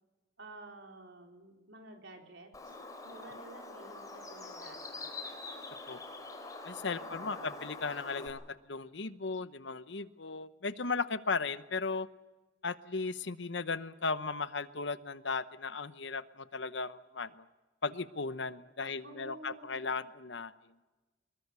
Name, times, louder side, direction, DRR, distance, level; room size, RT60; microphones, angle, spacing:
voice 1, 0.4-2.8 3.0-5.1 7.0-7.7 18.8-19.8, right 2 dB, 75° right, 2 dB, 4.2 m, -52 dB
Bird, 2.5-8.3, left 3 dB, 20° left, 3.9 m, -45 dB
voice 2, 5.9-6.2 6.6-8.4 8.7-12.1 12.6-17.4 17.8-20.5, left 4 dB, 65° left, 13 dB, 1.0 m, -36 dB
24.0 x 22.0 x 7.0 m, 1.2 s
head